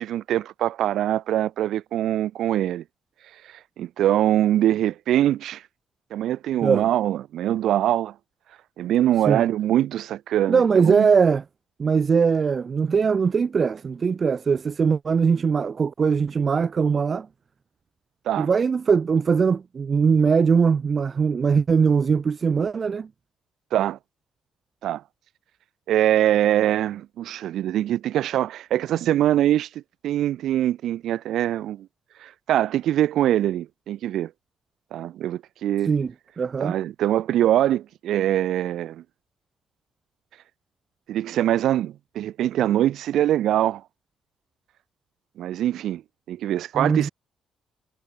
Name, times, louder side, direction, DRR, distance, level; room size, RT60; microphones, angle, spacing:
voice 1, 0.0-2.8 3.8-5.6 6.1-8.1 8.8-11.1 18.3-18.5 23.7-24.0 24.8-25.0 25.9-29.7 30.0-31.9 32.2-34.3 34.9-35.9 36.6-39.0 41.1-43.8 45.4-46.0 46.3-47.1, right 12 dB, 75° right, 3.6 m, -23 dB
voice 2, 10.5-11.4 11.8-17.3 18.4-23.1 35.8-36.1 36.4-36.7 46.7-47.1, right 5 dB, 40° right, 2.7 m, -21 dB
cardioid pair, 90°, 0 cm